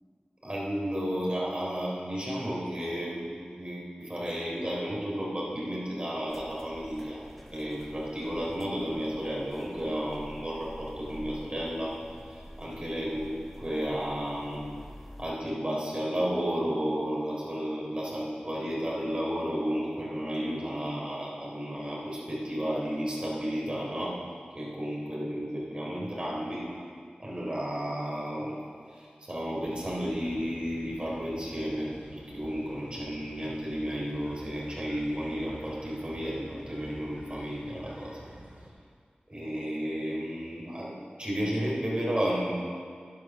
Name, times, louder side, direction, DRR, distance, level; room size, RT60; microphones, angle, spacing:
voice 1, 0.4-7.2 7.5-11.9 12.3-14.7 15.2-24.2 24.6-26.7 27.2-28.6 28.9-38.2 39.3-42.5, equal, 35° right, -5 dB, 3.7 m, -32 dB
sound 1, 6.3-15.3, equal, ahead, 1.5 m, -48 dB
sound 2, 29.6-38.7, right 1 dB, 65° right, 3.2 m, -48 dB
11.0 x 9.5 x 6.5 m, 2.1 s
wide cardioid pair, 50°, 3 cm